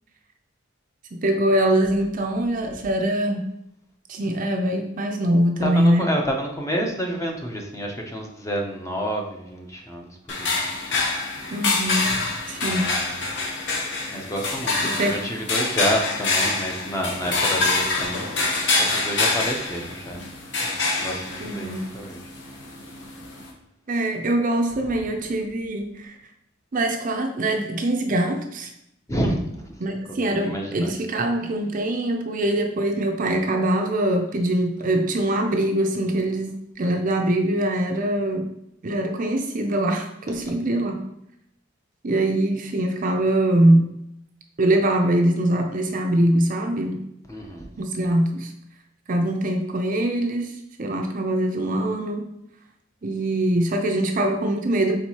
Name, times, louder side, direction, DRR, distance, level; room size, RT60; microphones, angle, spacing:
voice 1, 1.1-3.4 4.1-6.1 11.5-12.1 12.5-13.0 14.8-15.1 21.4-21.8 23.9-26.1 26.7-28.7 29.8-38.5 38.8-41.0 42.0-43.9 44.6-47.0 47.8-48.5 49.1-50.5 50.8-52.3 53.0-55.0, right 1 dB, 40° right, 4 dB, 0.5 m, -23 dB
voice 2, 5.6-10.6 12.6-13.2 14.1-18.5 18.7-20.2 20.6-22.2 29.1-29.7 30.2-31.0 47.3-47.7, equal, 15° left, 1 dB, 0.6 m, -29 dB
sound 1, 10.3-23.5, left 3 dB, 60° left, 0.9 m, -26 dB
4.4 x 3.8 x 2.9 m, 0.77 s
head